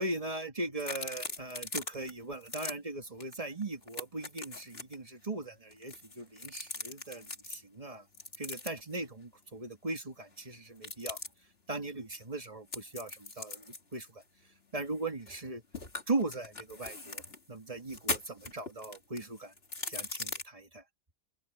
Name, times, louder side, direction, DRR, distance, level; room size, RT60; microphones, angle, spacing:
voice 1, 0.0-8.0 8.4-11.2 11.7-14.2 14.7-15.6 16.1-17.2 17.5-19.5 19.9-20.8, right 2 dB, 25° right, 2.2 m, -39 dB
sound 1, 0.8-2.1 2.4-2.7 3.2-3.3 3.6-4.9 5.7-7.6 8.1-8.9 10.8-11.3 12.7-15.4 15.7-17.4 17.8-20.4, left 3 dB, 45° left, 3.0 m, -40 dB
open air
omnidirectional pair, 1.4 m